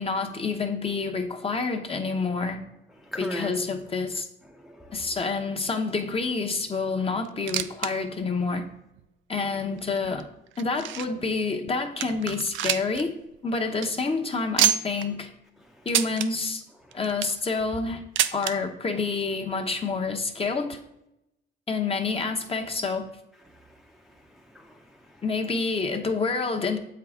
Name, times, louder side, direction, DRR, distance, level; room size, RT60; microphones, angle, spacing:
voice 1, 0.0-2.6 3.2-4.3 4.9-8.7 9.3-10.3 10.6-13.1 13.4-15.3 15.8-16.6 16.9-18.0 18.3-20.8 21.7-23.1 25.2-26.8, left 4 dB, 30° left, 4 dB, 0.9 m, -28 dB
voice 2, 2.9-3.6 4.1-5.2 15.6-16.1 16.7-17.3 17.6-17.7 23.4-25.5, equal, ahead, 1 dB, 0.6 m, -42 dB
sound 1, 7.2-7.9 8.2-8.3 9.0-9.1 9.8-11.3 11.7-11.8 12.0-13.0 13.3-13.4 13.7-13.9 14.6-15.1 15.9-16.3 16.9-17.4 18.2-18.5 19.5-19.6 19.8-19.9 20.7-20.8, right 11 dB, 75° right, 0.4 m, -26 dB
7.6 x 4.7 x 3.6 m, 0.85 s
cardioid pair, 90°, 20 cm